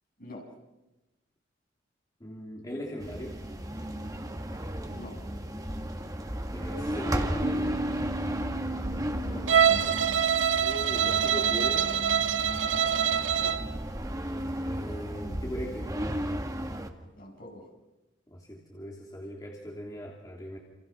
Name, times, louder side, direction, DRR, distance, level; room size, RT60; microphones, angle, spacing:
voice 1, 2.2-3.4 6.5-7.8 10.6-12.0 14.7-16.1 18.3-20.6, equal, 20° left, -2 dB, 3.2 m, -39 dB
sound 1, 3.0-16.9, equal, 20° right, 2.0 m, -34 dB
sound 2, 7.4-12.7, right 2 dB, 50° right, 1.6 m, -40 dB
voice 2, 9.3-10.0 13.3-13.6 17.2-17.7, equal, 50° left, 0 dB, 7.7 m, -44 dB
Bowed string instrument, 9.5-13.7, right 8 dB, 90° right, 0.8 m, -25 dB
29.5 x 28.5 x 6.1 m, 1.1 s
head